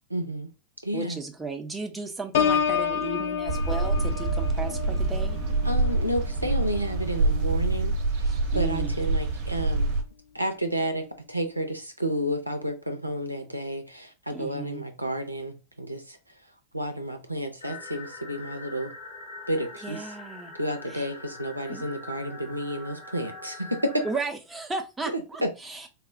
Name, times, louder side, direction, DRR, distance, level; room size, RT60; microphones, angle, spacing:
voice 1, 0.1-0.5 0.8-1.2 5.6-10.0 10.3-16.2 16.7-18.9 19.5-20.0 20.6-24.0 25.1-25.5, equal, 85° right, 0.5 m, -31 dB
voice 2, 0.9-5.4 8.2-9.0 14.3-14.8 19.8-20.5 20.9-21.1 21.7-21.9 24.0-25.9, right 3 dB, 10° right, 0.6 m, -35 dB
Piano, 2.3-8.0 8.4-8.8, left 7 dB, 55° left, 0.4 m, -30 dB
sound 1, 3.5-10.0, right 3 dB, 50° right, 0.8 m, -26 dB
sound 2, 17.6-24.2, left 2 dB, 70° left, 1.1 m, -43 dB
4.1 x 2.1 x 2.6 m
figure-of-eight pair, 90°, 0 cm